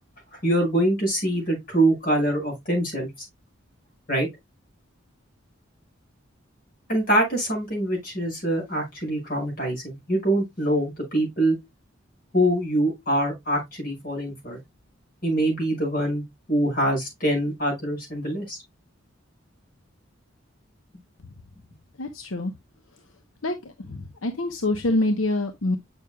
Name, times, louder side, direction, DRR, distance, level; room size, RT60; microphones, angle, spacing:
voice 1, 0.4-3.1 4.1-4.3 6.9-11.6 12.3-14.6 15.2-18.6, right 1 dB, 45° left, 5.8 m, -24 dB
voice 2, 22.0-22.5 23.4-23.5 23.9-25.8, left 2 dB, 90° left, 0.9 m, -25 dB
8.6 x 6.2 x 2.2 m
head